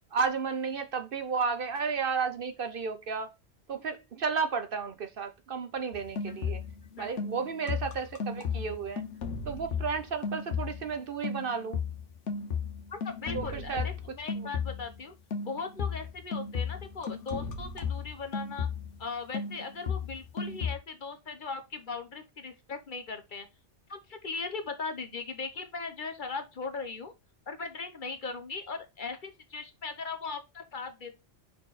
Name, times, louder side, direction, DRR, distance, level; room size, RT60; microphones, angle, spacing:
voice 1, 0.1-3.3 3.7-6.6 7.0-9.0 9.5-11.8 13.3-14.5, right 5 dB, 55° right, 0.8 m, -33 dB
sound 1, 5.9-6.9 7.2-11.0 11.2-15.0 15.3-19.0 19.3-20.8, left 6 dB, 75° left, 1.3 m, -35 dB
voice 2, 12.9-15.1 15.4-18.7 19.0-23.5 23.9-27.1 27.5-31.1, left 4 dB, 45° left, 1.0 m, -39 dB
5.5 x 4.4 x 4.0 m
omnidirectional pair, 1.2 m